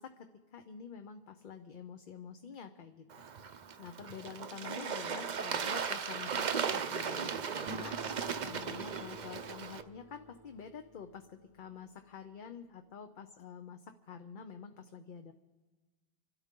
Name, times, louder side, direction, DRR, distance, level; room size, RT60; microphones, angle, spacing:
voice 1, 0.0-3.1 3.8-15.3, left 7 dB, 55° left, 6 dB, 0.8 m, -48 dB
Bird / Water, 3.1-9.8, right 6 dB, 50° right, 0.7 m, -37 dB
Acoustic guitar, 7.7-12.5, right 1 dB, 25° right, 0.9 m, -52 dB
27.0 x 12.5 x 3.7 m, 1.2 s
omnidirectional pair, 1.1 m